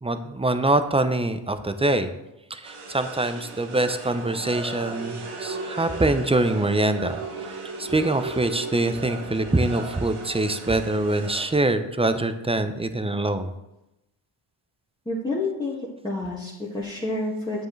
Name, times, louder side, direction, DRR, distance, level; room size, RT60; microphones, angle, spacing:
voice 1, 0.0-2.1 2.5-7.2 7.8-13.5, right 2 dB, 10° right, 10 dB, 0.6 m, -24 dB
sound 1, 2.6-11.5, right 3 dB, 85° right, 1.3 m, -36 dB
voice 2, 15.0-15.8 16.0-17.7, left 2 dB, 10° left, -7 dB, 1.8 m, -29 dB
9.1 x 7.0 x 3.2 m, 0.92 s
cardioid pair, 70°, 50 cm